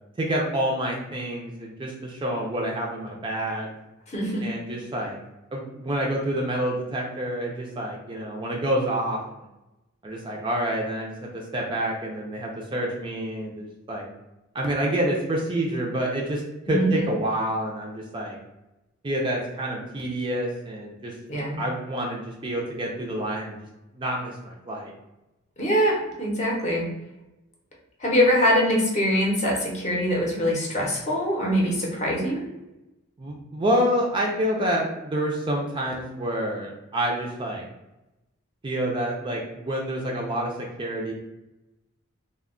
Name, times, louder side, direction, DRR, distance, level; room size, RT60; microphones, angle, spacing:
voice 1, 0.2-3.7 4.4-5.2 5.5-9.4 10.0-14.0 14.5-18.4 19.0-21.1 21.6-23.6 23.9-24.9 33.2-37.7 38.6-40.5 40.8-41.1, right 1 dB, 25° right, -1 dB, 0.3 m, -28 dB
voice 2, 4.1-4.4 16.7-16.9 21.3-21.6 25.6-26.9 28.0-32.4, equal, 35° left, -2 dB, 0.6 m, -23 dB
2.2 x 2.0 x 3.6 m, 0.96 s
head